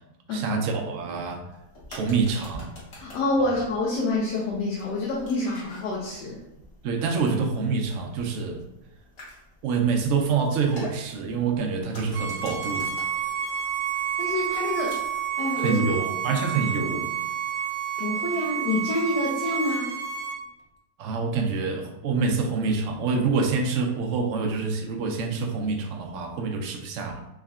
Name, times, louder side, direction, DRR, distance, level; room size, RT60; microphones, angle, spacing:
voice 1, 0.3-1.4 1.9-2.7 3.4-3.5 6.8-8.6 9.6-13.0 15.6-17.1 21.0-27.3, right 4 dB, 65° right, 2 dB, 0.8 m, -26 dB
sound 1, 1.5-15.3, equal, 55° left, 1.3 m, -48 dB
voice 2, 2.9-6.4 14.2-15.0 15.4-16.0 18.0-19.9, left 2 dB, 85° left, -4 dB, 1.3 m, -27 dB
Bowed string instrument, 12.1-20.4, right 8 dB, 85° right, 1.3 m, -29 dB
3.6 x 3.2 x 2.4 m, 0.92 s
omnidirectional pair, 1.8 m